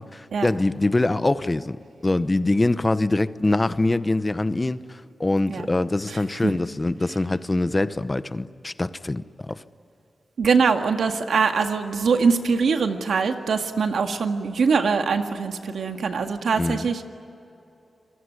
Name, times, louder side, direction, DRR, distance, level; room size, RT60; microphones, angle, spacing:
voice 1, 0.0-9.6 16.6-16.9, left 2 dB, 25° left, 0.8 m, -24 dB
voice 2, 6.1-6.5 10.4-17.0, right 5 dB, 85° right, 1.8 m, -23 dB
26.5 x 22.0 x 9.6 m
cardioid pair, 80°, 0 cm